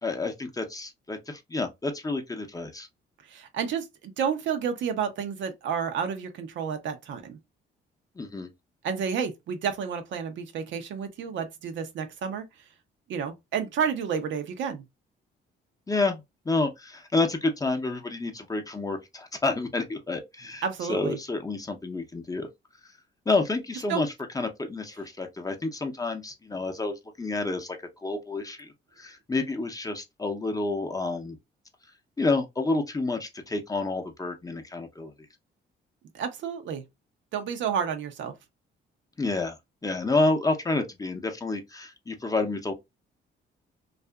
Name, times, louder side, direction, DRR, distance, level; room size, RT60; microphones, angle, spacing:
voice 1, 0.0-2.9 8.2-8.5 15.9-22.5 23.3-31.4 32.2-35.1 39.2-39.6 39.8-42.7, left 3 dB, 15° left, 0.6 m, -29 dB
voice 2, 3.3-7.4 8.8-12.5 13.1-14.8 20.6-21.2 23.9-24.0 36.1-36.8 37.3-38.3, right 7 dB, 75° right, 0.6 m, -30 dB
2.6 x 2.4 x 2.2 m
cardioid pair, 90°, 20 cm